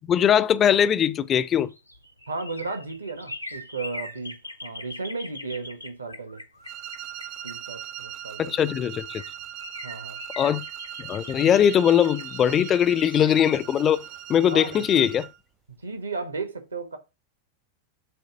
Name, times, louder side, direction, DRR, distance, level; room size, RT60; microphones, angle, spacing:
voice 1, 0.0-1.7 8.4-9.2 10.4-10.6 11.0-14.0 14.3-15.3, left 9 dB, 25° left, 0.5 m, -21 dB
sound 1, 1.3-8.1 8.7-8.8 9.0-14.7 15.1-15.2, left 2 dB, 90° left, 0.8 m, -42 dB
voice 2, 2.3-6.4 7.4-8.6 9.8-10.2 14.4-15.1 15.8-17.0, right 3 dB, 75° right, 1.2 m, -34 dB
sound 2, 6.6-15.4, right 11 dB, 45° right, 0.8 m, -40 dB
7.8 x 3.2 x 6.1 m
figure-of-eight pair, 90°, 0 cm